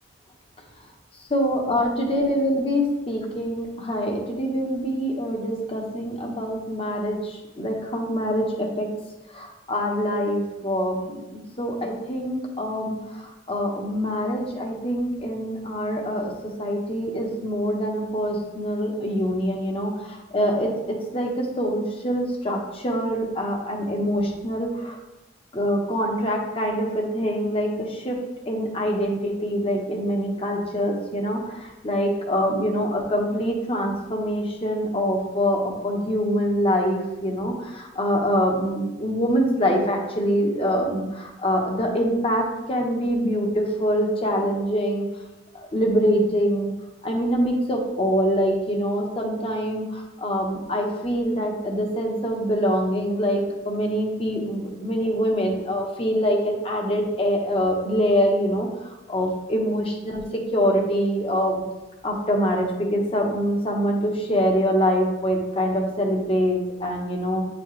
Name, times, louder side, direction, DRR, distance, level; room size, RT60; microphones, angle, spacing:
voice 1, 1.3-8.9 9.3-25.0 25.5-28.2 28.5-45.1 45.5-46.7 47.0-58.7 59.1-61.6 62.0-67.4, equal, 30° left, 1 dB, 1.0 m, -24 dB
8.4 x 4.2 x 3.2 m, 1.0 s
head